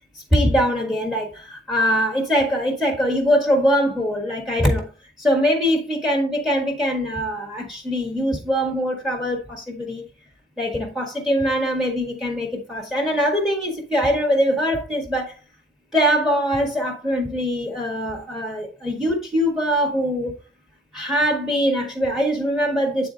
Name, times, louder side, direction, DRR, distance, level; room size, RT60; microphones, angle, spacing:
voice 1, 0.1-4.9 5.2-10.0 10.6-15.3 15.9-20.3 20.9-23.1, equal, ahead, 1.5 m, -22 dB
8.9 x 4.1 x 3.8 m
head